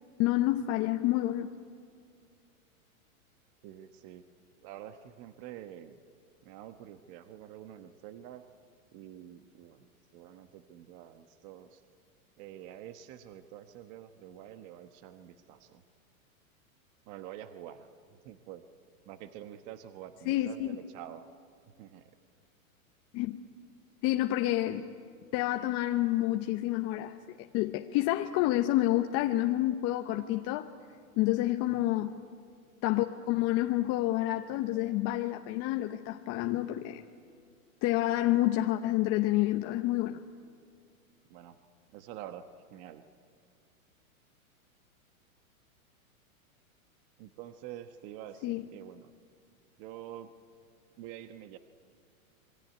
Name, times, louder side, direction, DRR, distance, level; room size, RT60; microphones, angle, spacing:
voice 1, 0.2-1.5 20.3-20.8 23.1-23.4 24.0-24.8 25.3-30.7 31.2-32.2 32.8-37.0 37.8-40.2 48.4-48.6, left 15 dB, 35° left, 5 dB, 0.9 m, -29 dB
voice 2, 3.6-4.2 4.6-6.0 6.4-8.4 8.9-11.8 12.4-15.8 17.1-17.9 18.2-18.6 19.1-21.2 21.8-22.1 31.7-31.9 41.3-41.6 41.9-43.0 47.2-49.1 49.8-50.3 51.0-51.6, right 11 dB, 40° right, 9 dB, 1.2 m, -47 dB
26.5 x 23.0 x 9.5 m, 2.2 s
hypercardioid pair, 135°, 42 cm